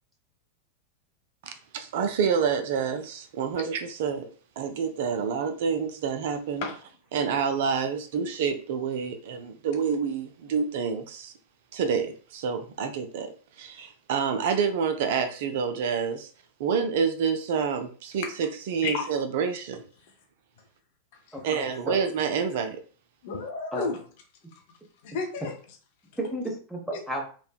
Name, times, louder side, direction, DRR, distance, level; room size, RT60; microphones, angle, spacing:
voice 1, 1.4-4.3 4.6-6.7 7.1-11.3 11.7-16.3 16.6-19.8 21.4-22.8, right 6 dB, 50° right, 0.3 m, -28 dB
voice 2, 21.3-22.0 23.7-23.9 26.2-27.2, right 1 dB, 5° right, 0.8 m, -32 dB
voice 3, 23.2-24.0 24.5-24.6 25.0-25.5 26.9-27.0, left 5 dB, 50° left, 0.5 m, -32 dB
3.2 x 2.1 x 2.3 m
figure-of-eight pair, 90°, 0 cm